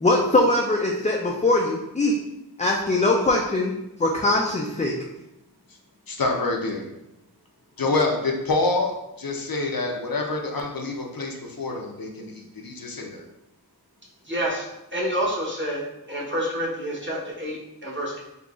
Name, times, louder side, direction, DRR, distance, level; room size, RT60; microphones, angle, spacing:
voice 1, 0.0-2.1 2.6-3.7 4.0-4.9, left 2 dB, 20° left, -1 dB, 0.3 m, -21 dB
voice 2, 6.1-6.8 7.8-13.2, left 3 dB, 65° left, 1 dB, 0.6 m, -27 dB
voice 3, 14.3-14.7 14.9-15.8 16.1-18.2, equal, 30° right, -4 dB, 1.0 m, -28 dB
3.9 x 2.8 x 2.4 m, 0.89 s
wide cardioid pair, 50°, 39 cm